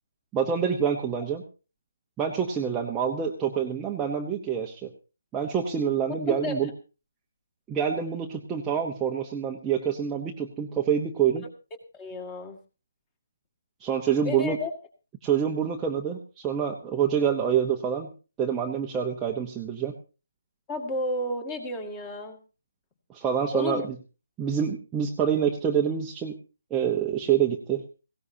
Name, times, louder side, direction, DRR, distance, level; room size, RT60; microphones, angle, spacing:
voice 1, 0.3-1.4 2.2-4.9 5.3-6.7 7.7-11.5 13.8-14.6 15.2-18.1 18.4-19.9 23.1-23.8 24.4-26.3 26.7-28.0, right 8 dB, 10° right, 0 dB, 0.9 m, -26 dB
voice 2, 6.3-6.6 11.9-12.6 14.2-14.7 20.7-22.4 23.5-23.9, left 2 dB, 15° left, 6 dB, 2.1 m, -32 dB
19.0 x 17.0 x 2.8 m, 0.33 s
hypercardioid pair, 170°, 0 cm